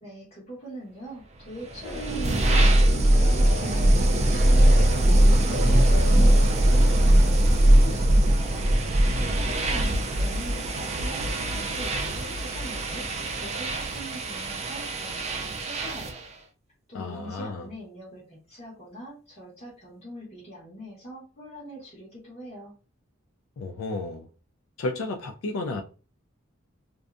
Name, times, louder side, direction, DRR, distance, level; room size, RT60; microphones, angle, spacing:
voice 1, 0.0-8.9 9.3-16.2 16.9-22.7, equal, 30° left, 1.1 m, -43 dB
sound 1, 1.6-16.3, right 1 dB, 30° right, 0.3 m, -21 dB
sound 2, 1.8-7.2, left 1 dB, 15° left, 0.8 m, -38 dB
voice 2, 16.9-17.7 23.6-24.3 24.8-25.8, left 2 dB, 70° left, 0.3 m, -32 dB
2.6 x 2.1 x 2.4 m
head